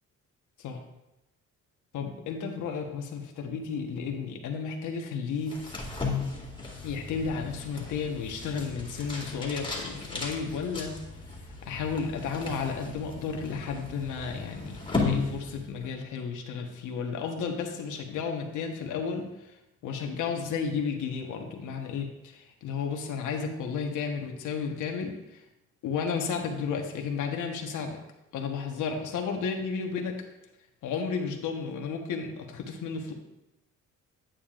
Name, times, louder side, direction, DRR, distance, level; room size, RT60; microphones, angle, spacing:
voice 1, 1.9-5.6 6.8-11.0 11.6-19.6 19.8-25.4 25.8-28.0 28.3-30.2 30.8-33.1, left 5 dB, 80° left, 3 dB, 1.2 m, -33 dB
sound 1, 5.4-16.0, left 4 dB, 15° left, 1.9 m, -35 dB
9.1 x 8.6 x 2.5 m, 0.94 s
cardioid pair, 90°, 30 cm